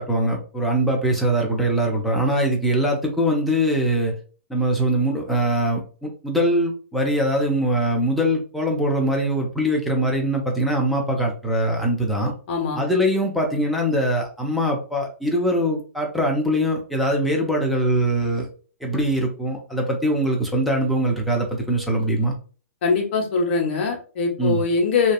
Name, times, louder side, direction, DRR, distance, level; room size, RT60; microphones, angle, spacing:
voice 1, 0.0-4.1 4.5-12.3 12.7-18.5 18.8-22.3 24.4-24.6, right 1 dB, ahead, -1 dB, 0.5 m, -22 dB
voice 2, 12.5-12.8 22.8-25.1, left 4 dB, 45° left, 3 dB, 0.8 m, -22 dB
2.6 x 2.3 x 2.3 m, 0.39 s
figure-of-eight pair, 120°, 8 cm